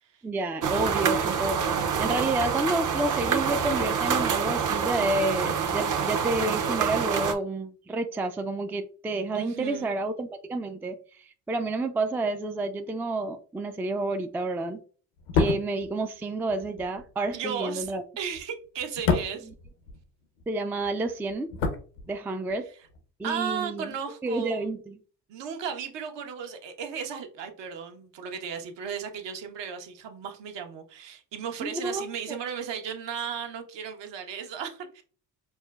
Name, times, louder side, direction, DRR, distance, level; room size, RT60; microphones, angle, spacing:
voice 1, 0.2-14.8 15.3-18.0 20.5-21.5 22.1-22.6 23.2-23.9 24.2-25.0 31.6-32.4, right 2 dB, 5° right, 6 dB, 0.3 m, -30 dB
sound 1, 0.6-7.3, right 6 dB, 40° right, 0.7 m, -26 dB
voice 2, 9.3-9.9 17.3-19.5 23.2-24.7 25.3-35.0, right 7 dB, 60° right, 5 dB, 1.0 m, -35 dB
sound 2, 15.2-20.5 20.7-22.6 22.8-23.0, left 5 dB, 80° left, 0.8 m, -30 dB
5.4 x 2.1 x 2.3 m, 0.41 s
hypercardioid pair, 50°, 48 cm